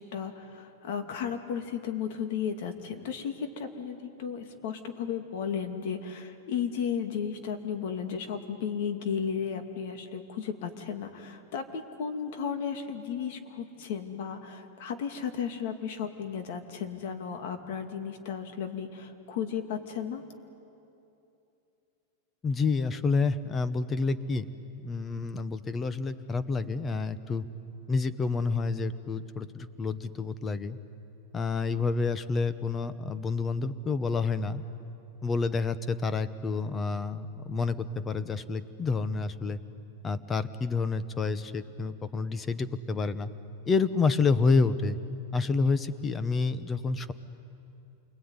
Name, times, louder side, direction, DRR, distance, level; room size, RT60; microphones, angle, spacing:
voice 1, 0.0-20.2, left 7 dB, 60° left, 7 dB, 2.4 m, -34 dB
voice 2, 22.4-24.5 24.7-27.5 27.9-30.8 31.3-34.6 35.2-39.6 40.0-43.3 43.7-45.0 45.3-47.1, left 4 dB, 15° left, 14 dB, 0.9 m, -29 dB
28.0 x 21.5 x 9.7 m, 2.8 s
supercardioid pair, 150°, 0 cm